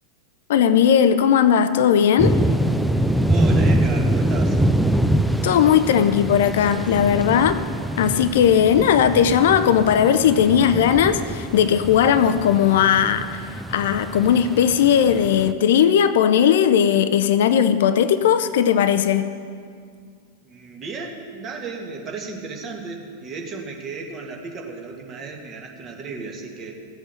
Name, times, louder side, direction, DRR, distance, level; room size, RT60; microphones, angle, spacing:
voice 1, 0.5-2.3 5.4-7.6 8.0-19.3, left 8 dB, 55° left, 12 dB, 0.5 m, -17 dB
sound 1, 2.2-15.5, right 1 dB, ahead, 0.5 m, -24 dB
voice 2, 3.3-4.6 20.4-26.7, right 4 dB, 30° right, 1 dB, 2.1 m, -34 dB
15.0 x 7.9 x 6.8 m, 2.1 s
figure-of-eight pair, 90°, 0 cm